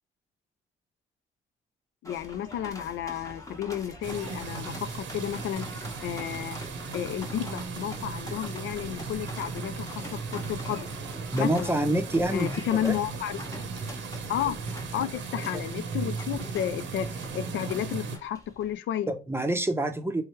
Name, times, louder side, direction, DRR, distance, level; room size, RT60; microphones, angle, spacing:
voice 1, 2.0-6.6 6.9-10.9 11.4-11.7 12.3-13.4 14.3-14.6 14.9-19.1, left 10 dB, 75° left, 0.4 m, -32 dB
sound 1, 2.0-18.8, left 1 dB, 15° left, 1.0 m, -45 dB
sound 2, 4.0-18.2, right 4 dB, 70° right, 0.7 m, -36 dB
voice 2, 11.3-13.0 13.4-13.5 15.4-15.6 19.1-20.2, right 1 dB, 10° right, 0.7 m, -27 dB
3.4 x 3.2 x 3.0 m
cardioid pair, 90°, 20 cm